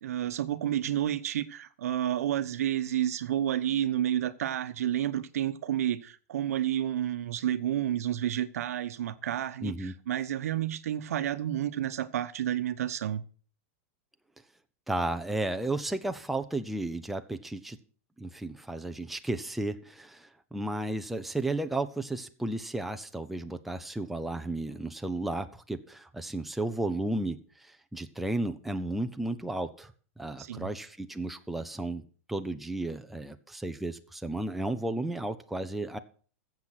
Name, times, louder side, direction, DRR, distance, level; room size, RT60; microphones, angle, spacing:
voice 1, 0.0-13.2 30.4-30.7, right 11 dB, 85° right, 1.0 m, -30 dB
voice 2, 9.6-10.0 14.9-17.8 18.2-29.9 30.2-32.0 32.3-36.0, right 2 dB, ahead, 0.7 m, -33 dB
14.5 x 7.4 x 6.0 m
supercardioid pair, 150°, 8 cm